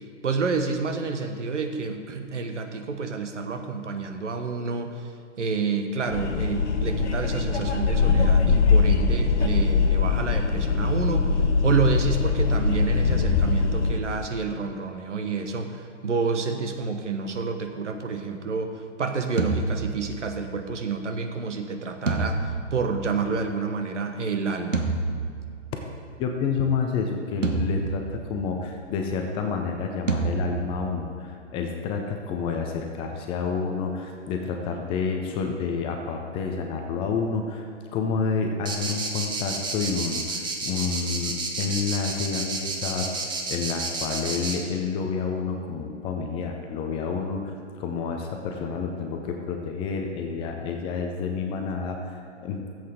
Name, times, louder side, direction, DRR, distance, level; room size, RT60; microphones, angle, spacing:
voice 1, 0.2-5.1 5.4-11.3 11.6-24.9, right 4 dB, 70° right, 6 dB, 1.2 m, -29 dB
sound 1, 6.1-14.0, left 4 dB, 65° left, 1.1 m, -22 dB
sound 2, 19.4-20.6 22.1-23.6 24.7-25.9 27.4-28.6 30.1-31.2, right 3 dB, 90° right, 1.1 m, -29 dB
voice 2, 26.2-37.7 37.9-43.1 43.5-52.7, left 5 dB, 15° left, 3 dB, 0.5 m, -29 dB
sound 3, 38.6-44.5, right 3 dB, 10° right, 0.9 m, -30 dB
15.0 x 7.9 x 3.6 m, 2.3 s
figure-of-eight pair, 120°, 37 cm